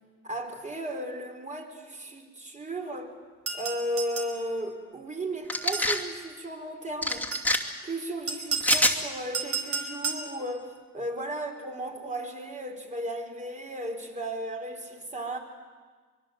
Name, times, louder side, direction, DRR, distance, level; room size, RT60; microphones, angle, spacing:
voice 1, 0.2-3.2 3.5-7.4 7.8-15.4, right 1 dB, 25° right, 4 dB, 4.3 m, -35 dB
sound 1, 3.5-4.4 5.5-6.1 7.1-7.6 8.3-8.9 9.3-10.3, right 4 dB, 55° right, 4.9 m, -32 dB
sound 2, 5.5-6.0 7.0-7.6 8.6-9.0, left 1 dB, 5° left, 2.6 m, -25 dB
24.5 x 23.0 x 7.8 m, 1.5 s
cardioid pair, 90°, 30 cm